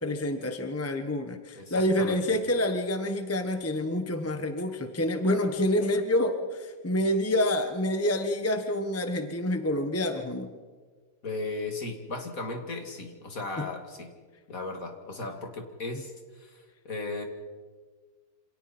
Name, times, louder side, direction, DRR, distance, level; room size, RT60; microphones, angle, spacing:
voice 1, 0.0-10.5 13.6-13.7, left 1 dB, 10° left, 6 dB, 1.0 m, -27 dB
voice 2, 1.6-2.4 11.2-14.1 14.5-17.2, left 3 dB, 50° left, 3 dB, 2.7 m, -36 dB
28.0 x 26.5 x 4.4 m, 1.4 s
omnidirectional pair, 2.0 m